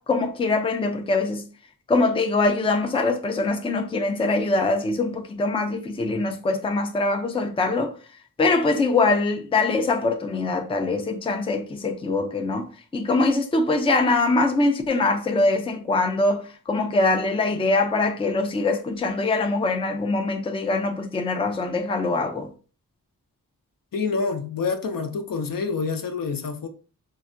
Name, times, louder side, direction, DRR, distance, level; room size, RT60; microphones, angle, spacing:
voice 1, 0.0-1.4 1.9-7.9 8.4-22.5, left 3 dB, 15° left, 0.4 m, -23 dB
voice 2, 23.9-26.7, left 4 dB, 65° left, 0.6 m, -27 dB
4.5 x 2.1 x 2.6 m
wide cardioid pair, 80°, 37 cm